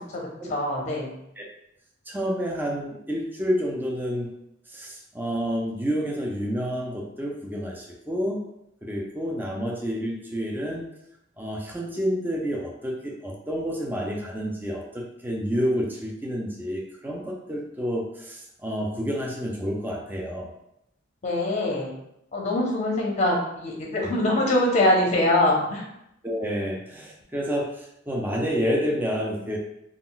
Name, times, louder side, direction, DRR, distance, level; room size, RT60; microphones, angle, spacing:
voice 1, 0.1-1.1 21.2-22.0 22.3-25.8, left 1 dB, 35° left, -1 dB, 0.6 m, -23 dB
voice 2, 2.1-4.3 4.7-8.4 8.8-10.9 11.4-20.5 24.0-24.1 26.2-29.6, equal, 10° right, -1 dB, 0.4 m, -29 dB
2.3 x 2.2 x 3.7 m, 0.80 s
head